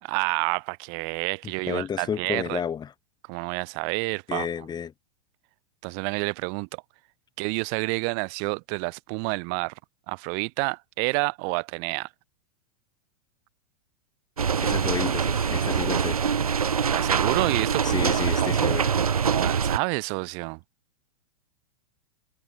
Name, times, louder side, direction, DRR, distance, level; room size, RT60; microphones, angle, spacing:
voice 1, 0.0-2.6 3.3-4.5 5.8-6.8 7.4-9.7 10.1-12.1 16.9-18.6 19.3-20.6, right 40 dB or more, 50° right, 5.7 m, -29 dB
voice 2, 1.6-2.9 4.3-4.9 14.6-16.2 17.8-18.9, left 7 dB, 20° left, 5.7 m, -31 dB
sound 1, 14.4-19.8, right 7 dB, 85° right, 0.8 m, -24 dB
hypercardioid pair, 100°, 18 cm